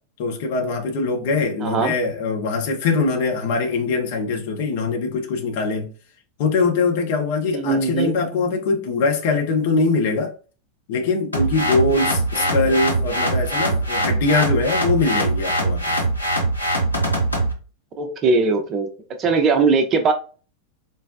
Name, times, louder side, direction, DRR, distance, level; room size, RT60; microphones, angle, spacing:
voice 1, 0.2-5.9 6.4-10.3 10.9-16.0, left 3 dB, 50° left, 0.7 m, -22 dB
voice 2, 1.6-1.9 7.5-8.1 12.4-12.5 18.0-18.9 19.2-20.1, right 4 dB, 30° right, 0.6 m, -19 dB
sound 1, 11.3-17.5, right 1 dB, 85° left, 0.7 m, -22 dB
3.8 x 2.0 x 2.6 m
figure-of-eight pair, 90°, 0 cm